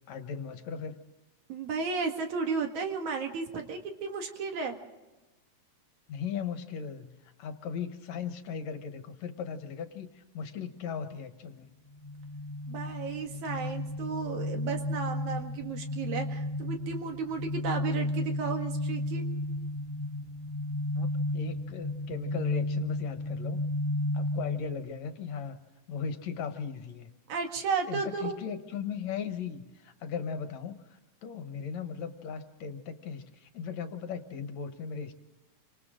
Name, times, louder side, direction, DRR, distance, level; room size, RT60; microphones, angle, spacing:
voice 1, 0.1-0.9 6.1-11.7 20.9-23.6 24.1-25.6 25.9-27.1 27.9-35.1, left 6 dB, 70° left, 8 dB, 2.5 m, -37 dB
voice 2, 1.5-4.8 12.7-19.2 27.3-28.4, right 5 dB, 75° right, 3 dB, 3.4 m, -34 dB
sound 1, 12.0-24.8, left 1 dB, 25° left, 3.1 m, -33 dB
28.5 x 26.0 x 3.8 m, 1.1 s
omnidirectional pair, 3.4 m